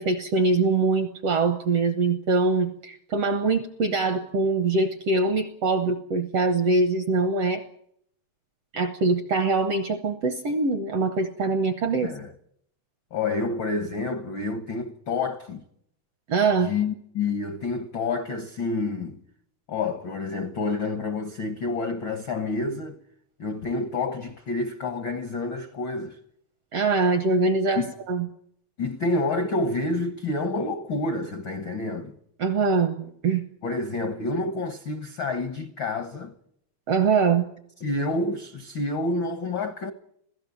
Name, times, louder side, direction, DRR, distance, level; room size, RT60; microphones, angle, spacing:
voice 1, 0.0-7.6 8.7-12.1 16.3-16.7 26.7-28.3 32.4-33.5 36.9-37.5, right 3 dB, 70° right, 1.5 m, -23 dB
voice 2, 12.0-12.3 13.1-15.6 16.6-19.2 19.7-23.0 23.4-26.2 27.8-27.9 28.8-32.1 33.6-36.3 37.8-39.9, left 3 dB, 70° left, 1.1 m, -28 dB
26.0 x 16.5 x 7.2 m
omnidirectional pair, 4.1 m